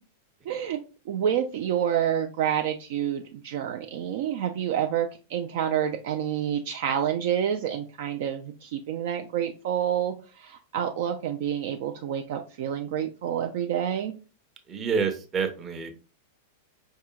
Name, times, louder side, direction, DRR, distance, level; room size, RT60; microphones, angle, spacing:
voice 1, 0.5-0.8 1.1-14.1, right 9 dB, 55° right, 5 dB, 0.3 m, -28 dB
voice 2, 14.7-15.9, right 5 dB, 25° right, 6 dB, 0.7 m, -28 dB
4.8 x 2.7 x 2.2 m, 0.35 s
figure-of-eight pair, 95°, 0 cm